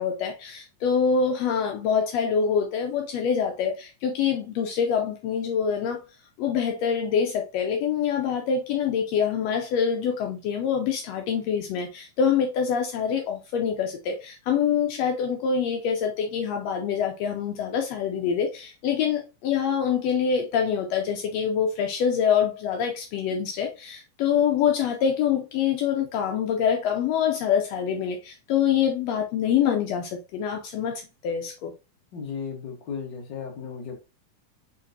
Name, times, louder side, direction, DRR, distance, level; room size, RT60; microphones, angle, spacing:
voice 1, 0.0-6.0 6.4-31.7, left 7 dB, 85° left, 1.4 m, -25 dB
voice 2, 32.1-33.9, left 6 dB, 50° left, 1.5 m, -35 dB
6.5 x 3.0 x 2.7 m
omnidirectional pair, 3.7 m